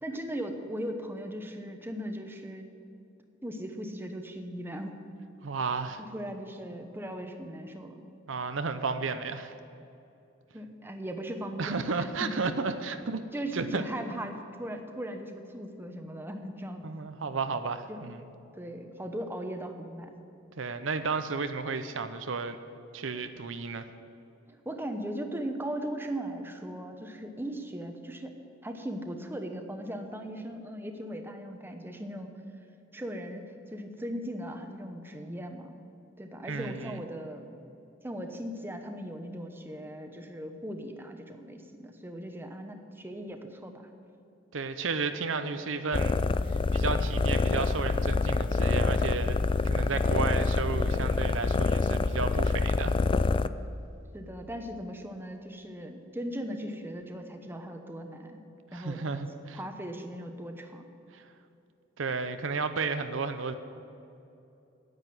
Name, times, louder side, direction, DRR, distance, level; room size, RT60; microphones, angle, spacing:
voice 1, 0.0-2.7 3.4-5.0 6.1-8.0 10.5-12.3 13.0-16.8 17.9-18.0 18.5-20.1 24.6-28.3 28.6-32.3 32.9-33.4 33.7-35.7 36.2-37.5 38.0-43.9 54.1-58.4 58.7-59.0 59.5-60.8, equal, 10° right, 5 dB, 0.9 m, -38 dB
voice 2, 5.4-6.0 8.3-9.5 11.6-13.2 13.5-13.8 14.1-14.3 16.8-18.2 20.6-22.6 22.9-23.9 36.5-37.0 44.5-49.4 49.6-52.9 58.7-59.6 61.1-61.2 62.0-63.5, right 4 dB, 75° right, 9 dB, 0.7 m, -33 dB
sound 1, 45.9-53.5, left 3 dB, 25° left, 0.3 m, -26 dB
9.9 x 8.1 x 9.3 m, 2.8 s
head